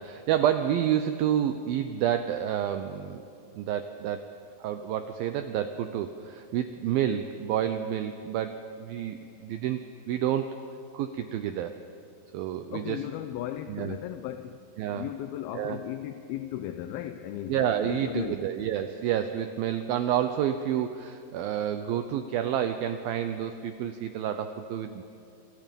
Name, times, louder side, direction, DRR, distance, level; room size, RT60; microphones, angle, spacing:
voice 1, 0.0-3.2 3.5-4.3 4.6-10.6 10.9-11.8 12.3-13.0 13.7-14.0 14.8-15.1 15.6-15.8 17.5-25.0, right 10 dB, 75° right, 8 dB, 2.2 m, -29 dB
voice 2, 12.7-14.6 14.9-18.4, left 12 dB, 75° left, 9 dB, 2.3 m, -36 dB
28.0 x 27.5 x 5.4 m, 2.6 s
omnidirectional pair, 4.9 m